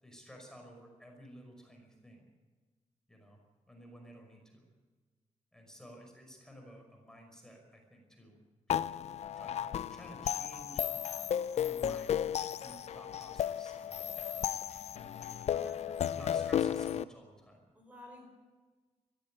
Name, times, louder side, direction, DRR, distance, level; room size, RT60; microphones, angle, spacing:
voice 1, 0.0-2.3 3.1-3.4 3.7-4.6 5.5-8.4 8.7-9.0 9.4-10.9 11.6-12.2 12.6-14.1 14.9-15.2 16.1-17.6, equal, 5° left, 1 dB, 5.4 m, -53 dB
sound 1, 8.7-17.0, left 9 dB, 65° left, 0.6 m, -34 dB
voice 2, 15.5-16.6 17.7-18.2, left 1 dB, 15° right, 1 dB, 5.2 m, -54 dB
21.5 x 15.5 x 8.7 m, 1.4 s
wide cardioid pair, 155°, 12 cm